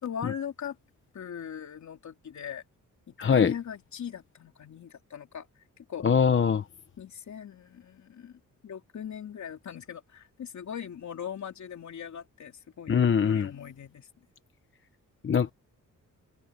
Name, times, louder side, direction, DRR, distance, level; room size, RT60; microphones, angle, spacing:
voice 1, 0.0-0.8 1.1-2.6 3.1-5.5 5.8-6.0 7.0-14.1, left 8 dB, 60° left, 3.1 m, -40 dB
voice 2, 3.2-3.5 6.0-6.6 12.9-13.5 15.2-15.5, left 7 dB, 40° left, 1.0 m, -22 dB
cardioid pair, 125°, 32 cm